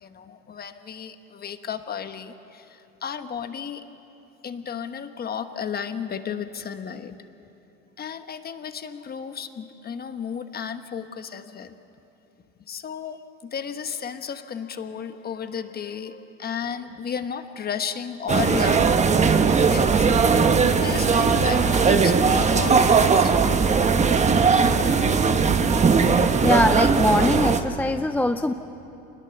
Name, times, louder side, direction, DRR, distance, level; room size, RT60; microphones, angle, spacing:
voice 1, 0.0-3.9 4.4-7.2 8.0-11.8 12.7-23.3, left 7 dB, 30° left, 9 dB, 1.2 m, -34 dB
sound 1, 18.3-27.6, right 5 dB, 25° right, 1.1 m, -19 dB
voice 2, 26.4-28.5, left 1 dB, 5° left, 8 dB, 0.5 m, -22 dB
25.5 x 20.5 x 7.0 m, 2.9 s
supercardioid pair, 115°, 30 cm